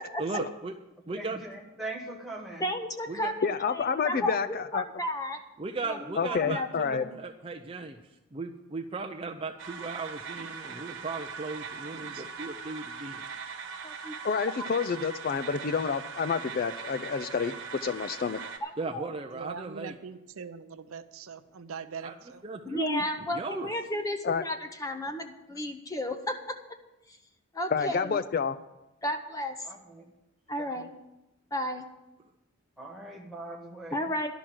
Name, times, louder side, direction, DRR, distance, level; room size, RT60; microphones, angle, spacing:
voice 1, 0.2-0.7 1.1-1.4 3.1-3.3 5.6-8.0 8.3-13.2 18.8-19.9 22.0-22.1 22.4-23.0 23.3-23.7, right 3 dB, 25° right, 3 dB, 0.5 m, -36 dB
voice 2, 1.1-2.7 29.6-30.0 30.6-30.7 32.8-34.0, right 2 dB, ahead, -1 dB, 1.5 m, -41 dB
voice 3, 2.6-5.4 5.9-7.2 13.8-14.1 18.6-19.1 22.6-26.3 27.1-27.2 27.5-28.2 29.0-29.6 30.5-30.9 31.5-31.8 33.9-34.3, left 1 dB, 15° left, 6 dB, 0.7 m, -33 dB
voice 4, 3.4-4.8 6.2-7.0 14.2-18.4 24.2-24.4 27.7-28.6, left 5 dB, 40° left, 12 dB, 0.3 m, -29 dB
sound 1, 9.6-18.6, right 5 dB, 55° right, 1.3 m, -41 dB
voice 5, 11.8-12.3 19.3-22.4, right 5 dB, 75° right, 10 dB, 0.6 m, -42 dB
11.5 x 6.1 x 8.8 m, 0.97 s
head